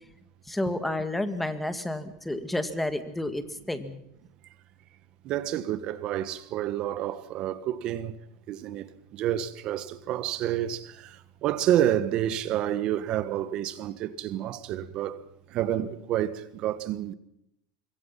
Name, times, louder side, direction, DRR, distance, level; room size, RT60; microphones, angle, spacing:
voice 1, 0.5-4.0, left 1 dB, 5° left, 1.9 m, -30 dB
voice 2, 5.2-8.2 8.5-15.2 15.5-17.1, right 11 dB, 40° right, 1.4 m, -29 dB
25.5 x 23.0 x 5.9 m
supercardioid pair, 150°, 2 cm